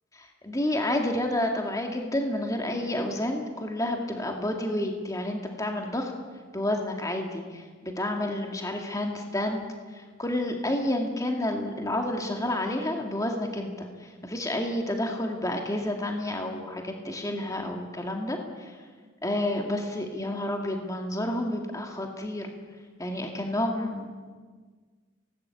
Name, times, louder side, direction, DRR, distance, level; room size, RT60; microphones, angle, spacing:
voice 1, 0.1-6.1 6.5-18.8 19.2-22.5 23.0-24.3, left 1 dB, 15° left, 2 dB, 2.3 m, -30 dB
23.0 x 19.0 x 8.5 m, 1.5 s
head